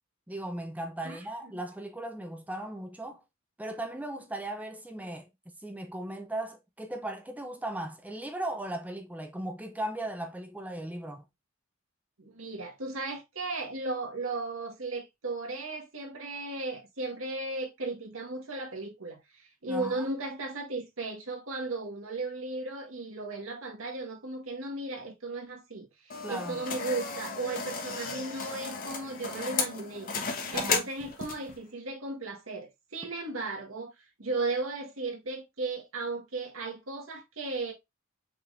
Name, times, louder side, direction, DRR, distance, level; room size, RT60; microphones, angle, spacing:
voice 1, 0.3-3.2 3.6-5.3 5.6-11.3 19.7-20.1 26.2-26.6 30.5-30.9, right 1 dB, 10° right, 0.6 m, -37 dB
voice 2, 12.2-30.1 30.5-33.9 34.2-37.7, right 3 dB, 80° right, 1.6 m, -36 dB
sound 1, 26.1-31.6, left 4 dB, 45° left, 1.3 m, -34 dB
5.7 x 3.6 x 2.6 m
head